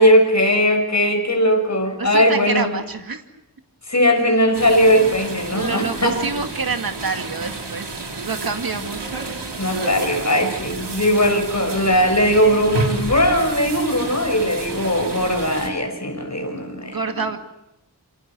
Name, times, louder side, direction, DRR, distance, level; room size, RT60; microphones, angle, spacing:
voice 1, 0.0-2.7 3.9-6.1 9.6-17.0, equal, 40° left, 3 dB, 6.4 m, -18 dB
voice 2, 2.0-3.2 5.5-9.1 16.8-17.4, right 4 dB, 55° right, 6 dB, 2.3 m, -27 dB
sound 1, 4.5-15.7, right 3 dB, 80° right, 4.0 m, -30 dB
28.5 x 26.5 x 6.3 m, 0.83 s
wide cardioid pair, 85°, 41 cm